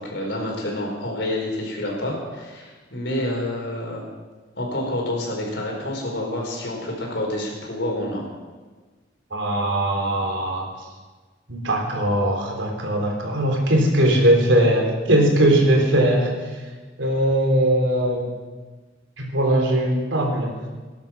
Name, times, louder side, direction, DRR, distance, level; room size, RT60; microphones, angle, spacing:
voice 1, 0.0-4.0 4.6-8.2, left 1 dB, 65° left, -1 dB, 4.9 m, -28 dB
voice 2, 9.3-10.7 11.5-16.6 17.0-18.3 19.2-20.5, right 1 dB, 90° right, 1 dB, 3.7 m, -20 dB
19.5 x 11.0 x 6.1 m, 1.3 s
head